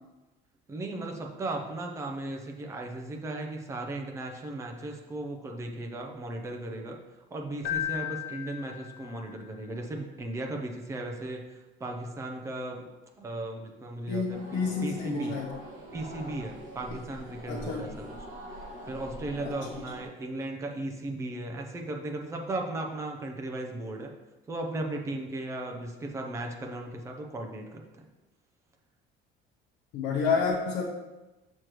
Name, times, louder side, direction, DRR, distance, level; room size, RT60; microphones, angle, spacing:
voice 1, 0.7-7.0 7.3-11.4 11.8-12.8 13.2-15.4 15.9-18.1 18.9-24.1 24.5-28.1, right 2 dB, 15° right, 2 dB, 0.6 m, -36 dB
Keyboard (musical), 7.6-9.5, left 12 dB, 50° left, 0.6 m, -35 dB
voice 2, 14.1-15.6 17.5-17.9 19.4-19.7 29.9-30.9, left 5 dB, 70° left, -3 dB, 0.9 m, -29 dB
sound 1, 14.3-20.1, right 1 dB, 45° right, 1.4 m, -44 dB
6.5 x 6.3 x 3.0 m, 1.1 s
cardioid pair, 175°, 19 cm